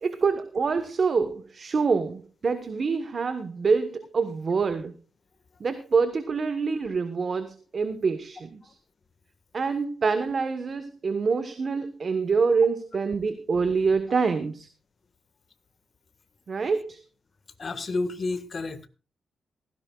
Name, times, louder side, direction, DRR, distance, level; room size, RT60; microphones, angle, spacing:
voice 1, 0.0-4.9 5.6-8.8 9.5-14.7 16.5-17.0, right 5 dB, 45° right, 10 dB, 1.2 m, -26 dB
voice 2, 17.6-18.9, left 3 dB, 40° left, 10 dB, 1.6 m, -31 dB
16.0 x 16.0 x 2.4 m, 0.33 s
cardioid pair, 110°, 0 cm